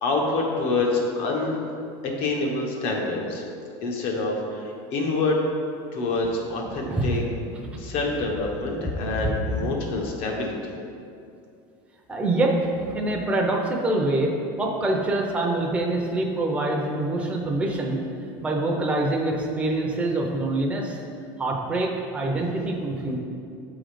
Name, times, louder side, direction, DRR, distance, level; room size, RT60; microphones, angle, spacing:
voice 1, 0.0-1.6 2.2-3.4 3.8-5.4 5.9-7.2 7.8-10.7, left 3 dB, 55° left, 0 dB, 1.2 m, -26 dB
voice 2, 6.7-7.2 7.5-7.8 9.0-9.3 9.6-9.8 12.1-14.3 14.6-18.0 18.4-21.0 21.4-23.2, right 2 dB, 10° right, -1 dB, 0.6 m, -25 dB
6.9 x 3.9 x 5.0 m, 2.5 s
cardioid pair, 150°, 11 cm